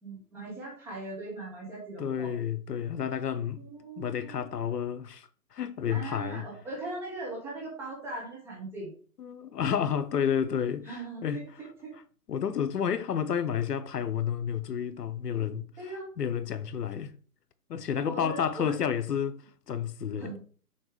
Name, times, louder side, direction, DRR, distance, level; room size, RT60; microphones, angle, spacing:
voice 1, 0.0-2.3 3.6-4.3 5.9-8.9 10.8-11.4 11.8-11.9 15.8-16.1 18.0-18.7 20.2-20.4, right 2 dB, 5° right, 1.1 m, -39 dB
voice 2, 2.0-3.6 4.0-6.5 9.2-11.4 12.3-15.7 16.2-17.1 17.7-20.4, left 8 dB, 80° left, 0.9 m, -30 dB
6.9 x 3.1 x 4.9 m
hypercardioid pair, 160°, 47 cm